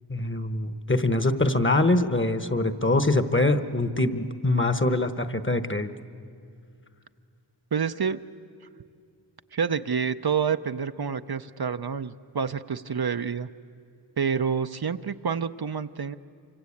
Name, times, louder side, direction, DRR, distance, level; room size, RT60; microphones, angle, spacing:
voice 1, 0.1-5.9, left 2 dB, 25° left, 11 dB, 1.1 m, -24 dB
voice 2, 7.7-8.2 9.5-13.5 14.2-16.2, right 6 dB, 60° right, 10 dB, 0.7 m, -28 dB
27.0 x 25.0 x 8.5 m, 2.3 s
wide cardioid pair, 50°, 43 cm